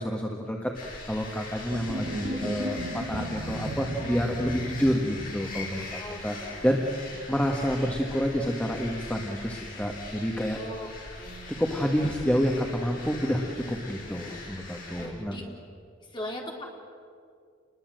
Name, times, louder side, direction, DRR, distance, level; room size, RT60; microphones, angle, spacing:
voice 1, 0.0-6.4 6.6-6.8 7.3-10.6 11.6-15.4, equal, 5° left, 0 dB, 1.7 m, -28 dB
sound 1, 0.7-15.1, left 3 dB, 45° left, 6.5 m, -42 dB
sound 2, 1.7-6.0, right 1 dB, 90° right, 1.4 m, -35 dB
voice 2, 4.0-4.7 6.0-6.6 7.1-7.2 10.5-11.4 14.9-15.5 16.1-16.6, left 1 dB, 25° left, -1 dB, 3.9 m, -40 dB
29.0 x 21.5 x 7.8 m, 2.2 s
head